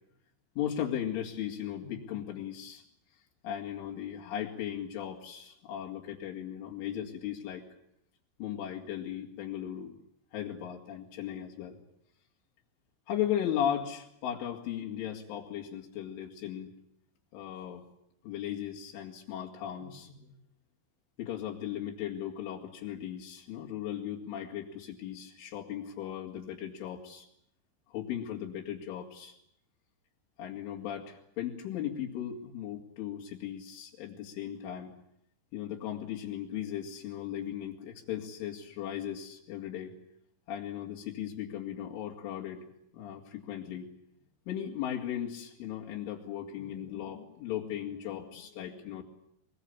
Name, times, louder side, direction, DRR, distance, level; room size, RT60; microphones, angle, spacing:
voice 1, 0.6-2.8 3.4-7.7 8.4-10.0 10.3-11.8 13.1-16.7 17.3-17.8 18.2-20.4 21.2-27.3 27.9-29.4 30.4-34.9 35.5-40.0 40.5-43.9 44.5-49.0, left 10 dB, 85° left, 0 dB, 4.9 m, -37 dB
24.0 x 22.5 x 8.6 m, 0.73 s
omnidirectional pair, 5.4 m